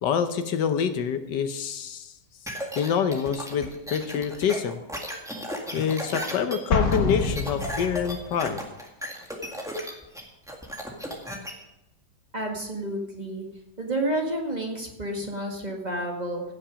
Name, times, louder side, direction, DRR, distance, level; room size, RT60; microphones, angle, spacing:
voice 1, 0.0-2.1 2.8-4.8 5.7-8.6, left 7 dB, 80° left, 9 dB, 1.5 m, -26 dB
sound 1, 2.5-11.5, equal, ahead, 1.8 m, -35 dB
Explosion, 6.7-8.3, left 3 dB, 60° left, 1.7 m, -26 dB
voice 2, 12.3-13.5 13.8-16.4, right 1 dB, 25° right, 0 dB, 1.8 m, -30 dB
16.0 x 7.4 x 5.0 m, 0.91 s
omnidirectional pair, 1.9 m